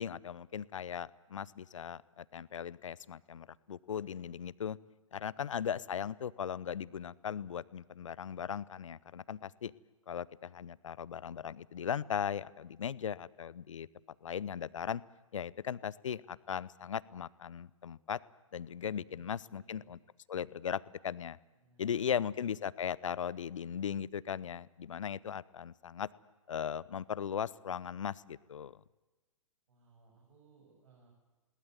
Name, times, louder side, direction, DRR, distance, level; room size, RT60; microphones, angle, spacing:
voice 1, 0.0-4.8 5.1-9.7 10.1-13.9 14.2-15.0 15.3-18.2 18.5-20.0 20.3-21.4 21.8-26.1 26.5-28.8, left 8 dB, 65° left, 20 dB, 0.8 m, -38 dB
voice 2, 19.0-19.9 21.5-22.3 29.7-31.1, right 5 dB, 65° right, -1 dB, 7.7 m, -64 dB
21.0 x 19.0 x 9.6 m, 1.2 s
figure-of-eight pair, 120°, 17 cm